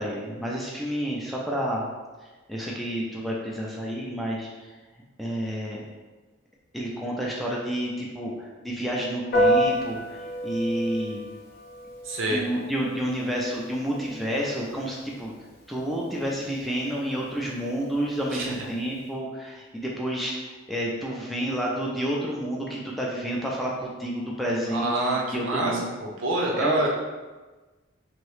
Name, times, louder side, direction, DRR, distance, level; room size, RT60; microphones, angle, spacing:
voice 1, 0.0-1.9 2.2-4.8 5.2-5.8 6.7-11.2 12.3-15.3 15.7-20.4 20.7-25.9 26.5-26.8, equal, ahead, -4 dB, 0.3 m, -30 dB
Piano, 9.3-19.1, equal, 50° left, 0.6 m, -31 dB
voice 2, 12.0-12.4 18.3-18.5 24.7-26.9, right 2 dB, 75° right, -1 dB, 0.7 m, -26 dB
2.9 x 2.7 x 3.1 m, 1.3 s
head